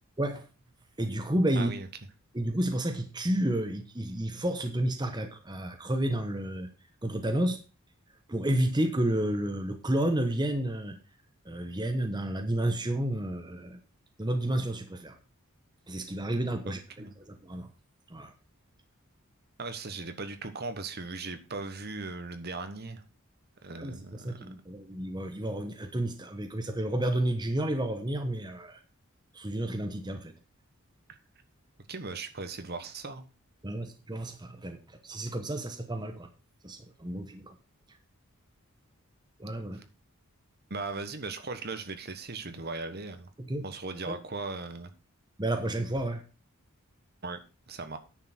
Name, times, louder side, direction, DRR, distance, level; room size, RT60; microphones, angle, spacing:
voice 1, 1.0-1.7 2.3-6.7 7.0-7.6 8.3-11.0 11.4-13.8 14.2-15.2 15.9-17.7 18.1-18.3 23.8-28.8 29.3-30.3 33.6-36.3 36.6-37.5 39.4-39.8 43.4-43.7 44.1-44.2 45.4-46.2, right 1 dB, 20° right, 1.1 m, -31 dB
voice 2, 1.6-1.9 16.7-17.1 19.6-23.0 23.6-24.5 31.9-33.2 40.7-43.3 43.6-44.9 47.2-47.4 47.7-48.0, right 3 dB, 45° right, 1.3 m, -38 dB
9.9 x 6.9 x 5.9 m
head